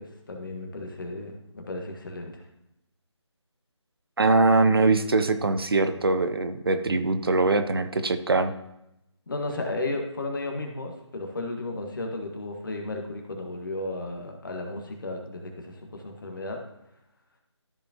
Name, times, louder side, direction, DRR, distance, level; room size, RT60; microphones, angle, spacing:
voice 1, 0.0-2.4 9.3-16.6, left 2 dB, 45° left, 2 dB, 1.7 m, -34 dB
voice 2, 4.2-8.5, right 3 dB, 50° right, 9 dB, 0.7 m, -22 dB
13.5 x 5.2 x 2.9 m, 0.85 s
figure-of-eight pair, 160°, 16 cm